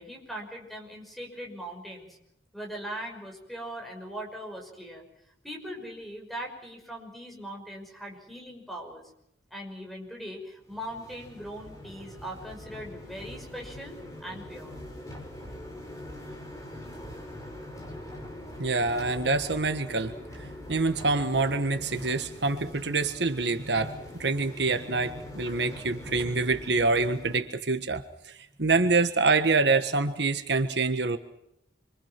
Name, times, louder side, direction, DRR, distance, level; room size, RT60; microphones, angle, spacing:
voice 1, 0.0-2.1 2.5-5.0 5.4-9.0 9.5-14.8, equal, ahead, 0 dB, 6.0 m, -40 dB
sound 1, 10.6-27.4, left 1 dB, 20° left, 6.1 m, -43 dB
voice 2, 18.6-23.9 24.2-28.3 28.6-31.2, right 3 dB, 75° right, 8 dB, 1.5 m, -26 dB
27.0 x 24.5 x 6.0 m, 0.80 s
head